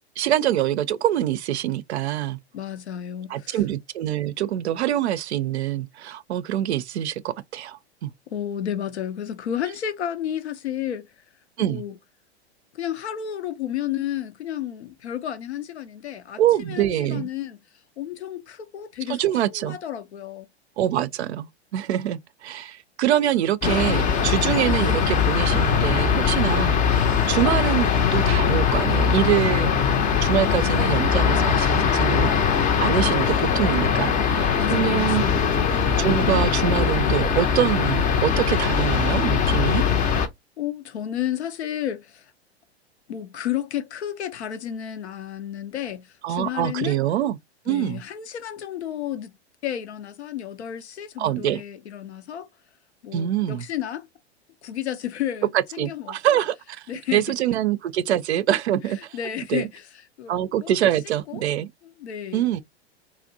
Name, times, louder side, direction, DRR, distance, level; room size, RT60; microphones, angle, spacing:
voice 1, 0.2-2.4 3.3-8.1 11.6-11.8 16.4-17.3 19.1-19.8 20.8-29.7 30.2-32.3 32.8-35.3 35.9-39.8 46.2-47.4 47.7-48.0 51.2-51.6 53.1-53.7 55.8-56.8 57.1-59.2 59.5-59.7 60.3-61.7 62.3-62.6, right 12 dB, 75° right, 0.5 m, -25 dB
voice 2, 2.5-3.6 8.3-11.1 11.6-12.0 12.7-17.6 18.0-20.5 30.4-31.0 34.6-35.5 40.6-42.3 43.1-47.0 47.7-49.3 49.6-52.5 53.0-54.1 54.6-56.4 56.9-57.4 58.8-59.9 60.2-60.7 61.3-61.4 62.0-62.6, left 10 dB, 85° left, 0.5 m, -32 dB
sound 1, 23.6-40.3, left 7 dB, 25° left, 0.5 m, -21 dB
2.6 x 2.0 x 2.6 m
hypercardioid pair, 100°, 33 cm